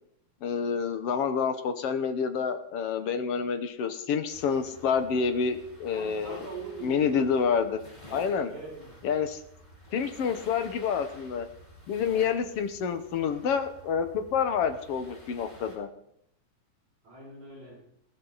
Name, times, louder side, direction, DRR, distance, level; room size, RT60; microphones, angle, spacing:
voice 1, 0.4-6.4 6.8-7.8 8.1-8.5 9.0-9.4 9.9-11.5 11.9-15.9, left 6 dB, 60° left, 8 dB, 1.8 m, -28 dB
sound 1, 4.3-15.8, equal, 10° left, 4.7 m, -51 dB
voice 2, 5.9-7.3 8.5-8.9 17.0-17.8, right 3 dB, 60° right, -4 dB, 7.9 m, -42 dB
20.5 x 15.5 x 4.1 m, 0.73 s
omnidirectional pair, 3.6 m